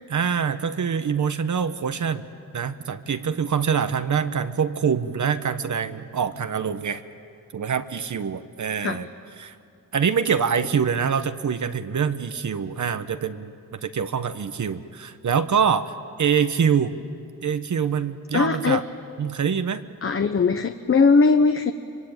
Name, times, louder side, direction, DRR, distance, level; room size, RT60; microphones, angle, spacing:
voice 1, 0.1-7.0 7.5-9.1 9.4-9.6 9.9-16.9 17.4-18.8 19.2-19.8, right 7 dB, 60° right, 10 dB, 1.2 m, -25 dB
voice 2, 18.3-18.8 20.0-21.7, left 4 dB, 40° left, 8 dB, 1.0 m, -19 dB
25.5 x 24.0 x 9.0 m, 2.4 s
wide cardioid pair, 100°, 34 cm